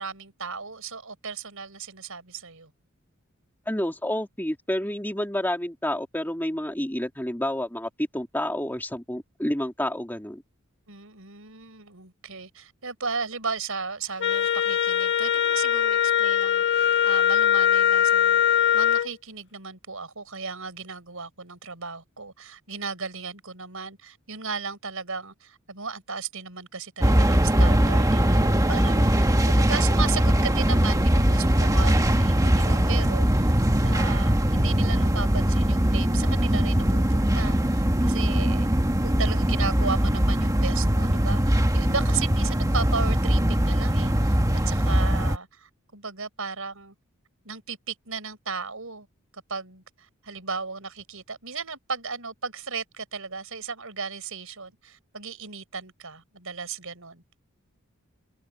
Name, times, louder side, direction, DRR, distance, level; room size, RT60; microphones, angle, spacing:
voice 1, 0.0-2.7 10.9-38.7 39.0-46.9 47.4-49.1 49.3-57.2, right 5 dB, 70° right, 7.3 m, -35 dB
voice 2, 3.7-10.4, left 1 dB, 10° left, 2.8 m, -29 dB
Wind instrument woodwind instrument, 14.2-19.1, left 10 dB, 55° left, 1.3 m, -21 dB
sound 1, 27.0-45.4, equal, 15° right, 1.5 m, -21 dB
head